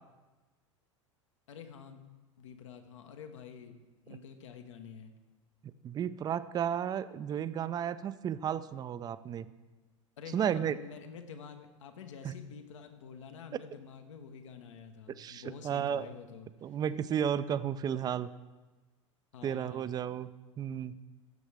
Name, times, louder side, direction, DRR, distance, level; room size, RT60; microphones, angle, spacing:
voice 1, 1.5-2.0 2.4-3.8 4.0-5.1 10.2-16.5 19.3-20.0, left 7 dB, 70° left, 7 dB, 1.1 m, -48 dB
voice 2, 5.6-9.5 10.3-10.7 12.2-12.3 15.1-16.1 16.6-18.3 19.4-20.3 20.6-21.0, right 9 dB, 25° right, 14 dB, 0.4 m, -33 dB
15.5 x 7.1 x 3.4 m, 1.2 s
hypercardioid pair, 90°, 16 cm